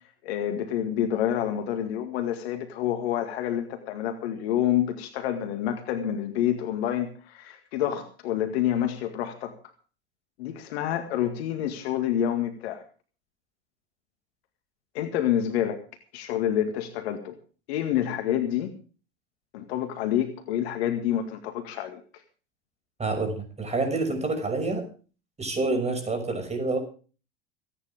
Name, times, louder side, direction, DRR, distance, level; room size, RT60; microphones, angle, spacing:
voice 1, 0.2-9.5 10.4-12.8 14.9-15.8 16.1-17.4 17.7-18.7 19.5-22.0, left 10 dB, 65° left, 7 dB, 2.1 m, -28 dB
voice 2, 23.0-24.9 25.4-26.8, right 3 dB, 20° right, 6 dB, 6.1 m, -27 dB
27.5 x 9.9 x 3.5 m, 0.37 s
hypercardioid pair, 85°, 33 cm